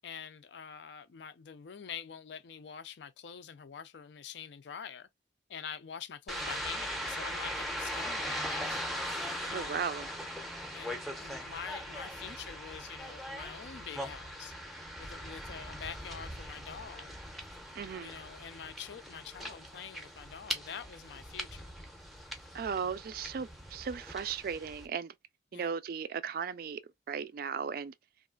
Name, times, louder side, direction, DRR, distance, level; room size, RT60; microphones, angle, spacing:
voice 1, 0.0-5.1 5.5-8.8 9.4-9.9 10.7-14.5 15.0-17.1 18.0-21.8 25.5-25.7, left 7 dB, 70° left, 0.4 m, -46 dB
sound 1, 6.3-24.9, equal, ahead, 0.6 m, -40 dB
voice 2, 9.5-10.1 17.8-18.2 22.5-25.1 25.5-26.8 27.1-27.9, right 6 dB, 50° right, 0.3 m, -36 dB
3.1 x 2.4 x 2.3 m
head